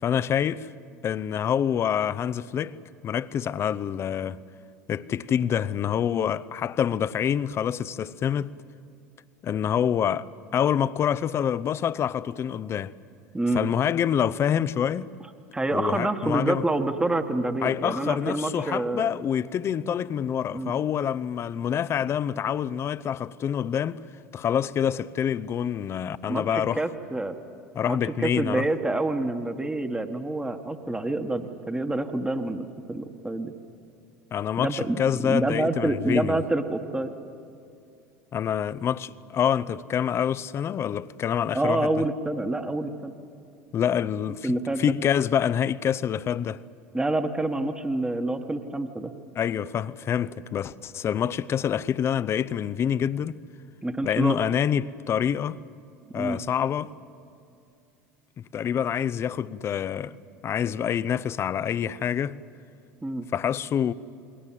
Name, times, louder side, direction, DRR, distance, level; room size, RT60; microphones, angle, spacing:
voice 1, 0.0-0.7 1.0-2.8 3.0-4.4 4.9-8.5 9.4-10.3 10.5-12.9 13.5-15.1 15.7-16.6 17.6-24.0 24.3-26.8 27.7-28.7 34.3-36.4 38.3-42.0 43.7-46.6 49.4-53.4 54.0-55.6 56.1-56.9 58.4-60.2 60.4-62.4 63.3-63.9, left 9 dB, 35° left, 0.7 m, -26 dB
voice 2, 15.5-19.1 20.5-20.7 26.3-27.4 27.9-33.5 34.6-35.0 35.3-37.1 41.5-43.1 44.4-44.9 46.9-49.1 53.8-54.4 56.1-56.4 63.0-63.3, right 2 dB, 10° right, 1.5 m, -27 dB
28.5 x 22.0 x 7.6 m
hypercardioid pair, 75°, 7 cm